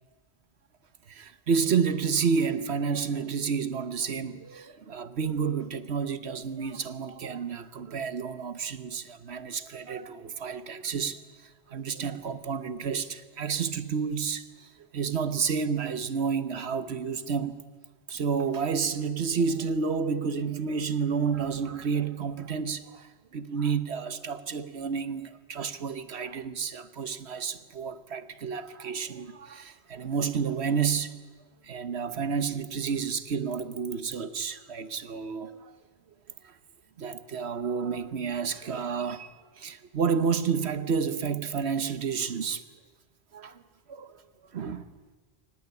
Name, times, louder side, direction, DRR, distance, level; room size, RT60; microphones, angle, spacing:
voice 1, 1.1-11.2 11.7-14.7 14.9-17.6 18.1-31.1 31.6-35.7 36.4-36.5 37.0-42.6 43.3-43.6 43.9-44.2 44.5-44.8, right 6 dB, 75° right, 1.4 m, -30 dB
23.5 x 18.5 x 9.7 m
omnidirectional pair, 1.1 m